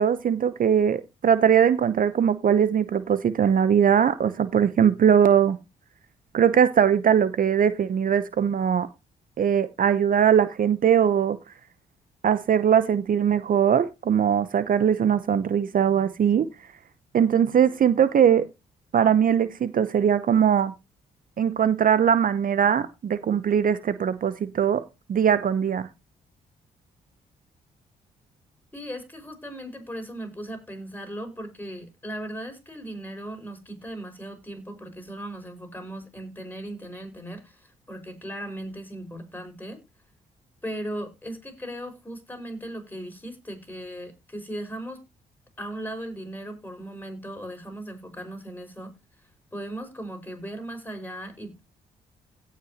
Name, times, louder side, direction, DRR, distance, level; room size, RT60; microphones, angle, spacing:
voice 1, 0.0-5.6 6.3-8.9 9.4-11.4 12.2-16.5 17.1-18.5 18.9-20.7 21.4-24.8 25.1-25.9, right 8 dB, 50° right, 0.8 m, -21 dB
voice 2, 28.7-39.8 40.6-45.0 45.6-48.9 49.5-51.6, right 1 dB, 10° left, 5.4 m, -37 dB
17.0 x 6.0 x 2.9 m
hypercardioid pair, 45°, 18 cm